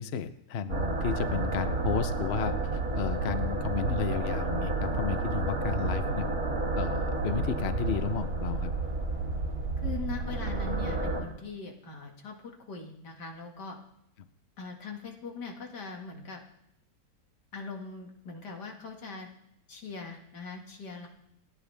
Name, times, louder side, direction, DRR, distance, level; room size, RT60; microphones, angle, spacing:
voice 1, 0.0-6.3 6.7-8.7, left 7 dB, 55° left, 11 dB, 0.8 m, -33 dB
sound 1, 0.7-11.2, right 3 dB, 60° right, 3.2 m, -30 dB
voice 2, 9.8-13.8 14.6-16.4 17.5-19.3 19.7-21.1, left 4 dB, 75° left, 2 dB, 2.6 m, -41 dB
28.0 x 10.0 x 3.5 m, 0.76 s
omnidirectional pair, 1.8 m